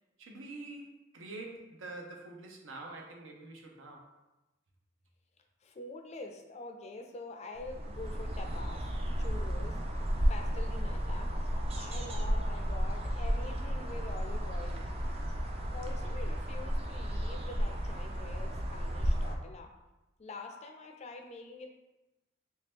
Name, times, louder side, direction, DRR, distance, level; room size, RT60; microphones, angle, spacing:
voice 1, 0.2-4.1, right 2 dB, 80° right, 1 dB, 0.7 m, -46 dB
voice 2, 5.6-8.9 9.2-9.8 10.3-11.4 11.8-14.9 15.7-19.7 20.2-21.7, left 3 dB, 35° left, 4 dB, 0.4 m, -46 dB
sound 1, 7.5-19.3, equal, 30° right, 0.4 m, -33 dB
3.3 x 2.8 x 3.4 m, 1.0 s
head